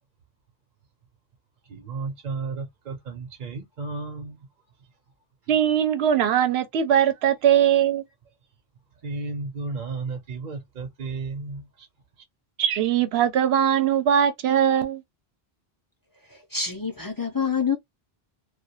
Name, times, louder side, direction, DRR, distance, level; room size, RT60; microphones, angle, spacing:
voice 1, 1.6-4.5 5.4-5.5 7.2-7.3 9.0-11.9 12.2-12.3, right 4 dB, 55° right, 0.8 m, -33 dB
voice 2, 5.5-8.0 12.6-15.0, right 9 dB, 85° right, 0.9 m, -21 dB
voice 3, 16.3-17.8, left 6 dB, 30° left, 0.4 m, -27 dB
2.3 x 2.3 x 2.8 m
omnidirectional pair, 1.1 m